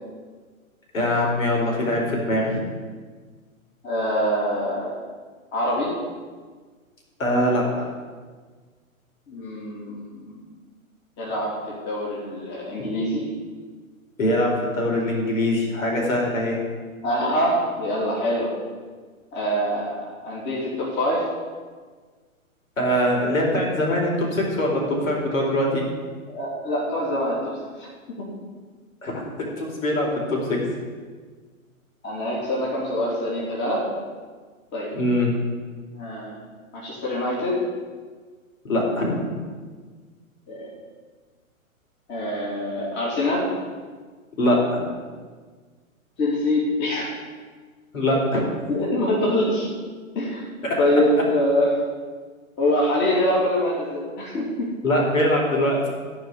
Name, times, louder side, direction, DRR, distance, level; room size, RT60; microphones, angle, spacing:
voice 1, 0.9-2.7 7.2-7.9 14.2-16.6 22.8-25.8 29.0-29.1 29.6-30.6 34.9-35.3 38.6-39.4 44.3-44.8 47.9-48.4 54.8-55.9, left 1 dB, 65° left, -1 dB, 4.7 m, -22 dB
voice 2, 3.8-4.9 5.5-5.9 9.3-10.3 11.2-13.2 17.0-18.5 19.3-21.3 26.3-27.9 32.0-33.8 34.7-34.9 35.9-36.3 36.7-37.6 40.5-40.7 42.1-43.5 46.2-47.1 48.7-49.7 50.1-50.4 50.8-51.8 52.6-54.7, left 1 dB, 25° left, -5 dB, 3.4 m, -24 dB
15.0 x 5.2 x 9.5 m, 1.5 s
hypercardioid pair, 135°, 42 cm